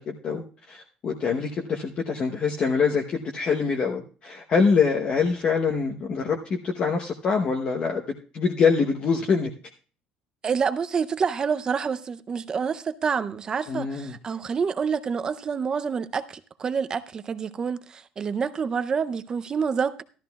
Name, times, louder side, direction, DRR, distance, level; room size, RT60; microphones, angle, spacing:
voice 1, 0.0-8.0 8.3-9.5 13.7-14.1, left 5 dB, 35° left, 0.8 m, -24 dB
voice 2, 10.4-20.0, right 6 dB, 25° right, 0.5 m, -27 dB
14.0 x 13.0 x 2.3 m
cardioid pair, 160°, 3 cm